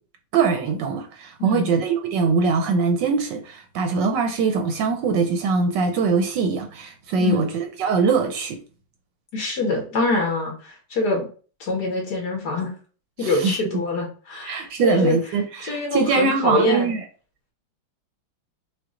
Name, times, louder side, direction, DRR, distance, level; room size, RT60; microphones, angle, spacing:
voice 1, 0.3-8.6 13.2-13.6 14.4-17.0, right 5 dB, 70° right, 1.3 m, -22 dB
voice 2, 1.4-1.7 7.2-7.5 9.3-11.3 11.6-12.7 13.2-15.2 15.6-16.9, left 2 dB, 55° left, 1.8 m, -24 dB
5.8 x 2.4 x 3.7 m
omnidirectional pair, 2.2 m